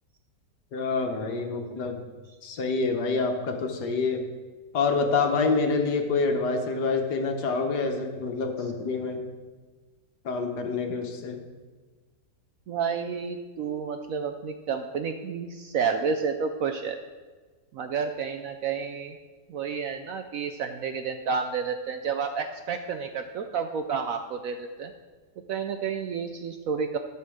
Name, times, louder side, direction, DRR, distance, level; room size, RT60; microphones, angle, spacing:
voice 1, 0.7-2.0 2.4-4.2 4.7-9.3 10.2-11.4, left 4 dB, 70° left, 4 dB, 1.6 m, -27 dB
voice 2, 12.7-17.0 17.7-19.2 19.5-24.9 25.5-27.0, right 6 dB, 70° right, 6 dB, 0.8 m, -30 dB
12.5 x 4.3 x 6.4 m, 1.4 s
omnidirectional pair, 1.9 m